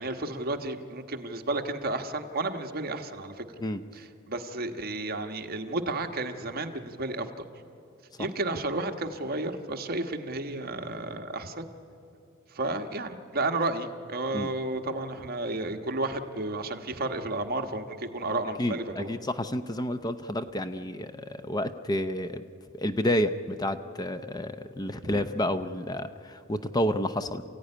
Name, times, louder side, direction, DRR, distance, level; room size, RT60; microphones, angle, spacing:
voice 1, 0.0-3.3 3.9-7.3 8.2-11.7 12.5-19.1 25.1-25.2, right 2 dB, 50° right, 5 dB, 1.4 m, -32 dB
voice 2, 18.6-22.4 22.7-27.4, left 1 dB, 20° left, 10 dB, 0.6 m, -30 dB
28.0 x 15.5 x 9.9 m, 2.7 s
head